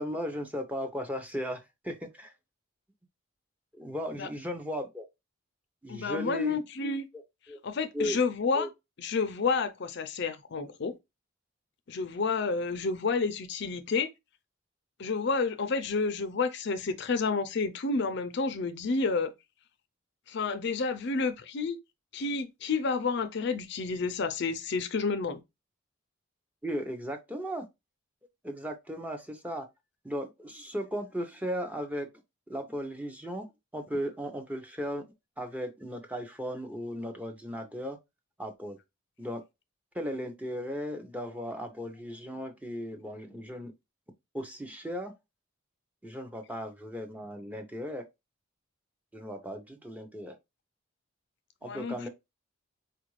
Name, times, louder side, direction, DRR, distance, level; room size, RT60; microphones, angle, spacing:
voice 1, 0.0-2.3 3.7-5.1 5.8-6.6 7.5-7.6 7.9-8.2 8.5-8.7 26.6-27.7 28.4-29.7 30.0-32.1 32.5-33.5 33.7-35.1 35.4-38.0 38.4-38.8 39.2-39.4 39.9-43.7 44.3-45.1 46.0-48.0 49.1-50.4 51.6-52.1, equal, 5° right, 0.6 m, -36 dB
voice 2, 5.9-7.1 7.6-8.7 9.0-11.0 11.9-14.1 15.0-19.3 20.3-21.8 22.1-25.4 51.6-52.1, left 4 dB, 55° left, 0.5 m, -30 dB
4.6 x 2.5 x 3.0 m
head